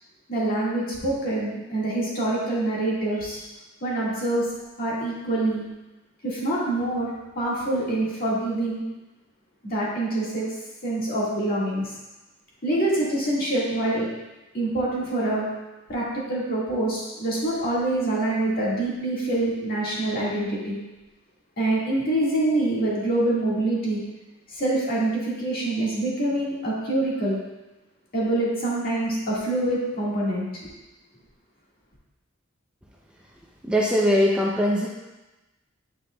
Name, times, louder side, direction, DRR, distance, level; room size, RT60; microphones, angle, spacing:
voice 1, 0.3-3.4 3.8-4.5 4.8-5.6 6.2-7.1 7.4-8.8 9.6-10.5 10.8-11.9 12.6-14.1 14.5-15.5 15.9-20.8 21.6-24.0 24.6-27.4 28.1-30.5, right 1 dB, 50° left, -6 dB, 1.8 m, -25 dB
voice 2, 33.6-34.9, equal, 5° right, -3 dB, 0.5 m, -21 dB
8.4 x 5.2 x 2.3 m, 1.1 s
head